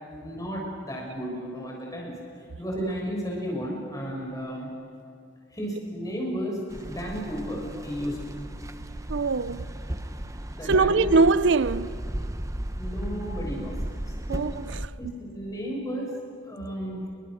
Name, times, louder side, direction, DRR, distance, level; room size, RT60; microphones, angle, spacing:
voice 1, 0.1-2.1 2.6-4.7 5.5-8.4 10.5-11.0 12.8-14.0 14.3-14.5 15.0-16.1 16.4-17.1, equal, 20° left, 6.4 m, -33 dB
sound 1, 6.7-14.9, right 1 dB, 15° right, 0.8 m, -35 dB
voice 2, 9.1-9.7 10.6-12.0 14.3-14.9, right 4 dB, 75° right, 0.6 m, -23 dB
29.5 x 23.0 x 6.5 m
head